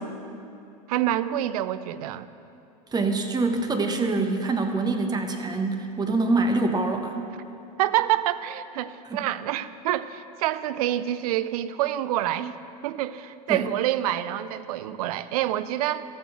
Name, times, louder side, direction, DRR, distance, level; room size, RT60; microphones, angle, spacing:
voice 1, 0.9-2.3 7.8-12.6 12.8-16.0, right 13 dB, 70° right, 14 dB, 0.5 m, -27 dB
voice 2, 2.9-7.2 9.1-9.2 13.5-13.7, right 3 dB, 20° right, 5 dB, 1.2 m, -25 dB
14.0 x 7.1 x 6.2 m, 2.7 s
hypercardioid pair, 100°, 20 cm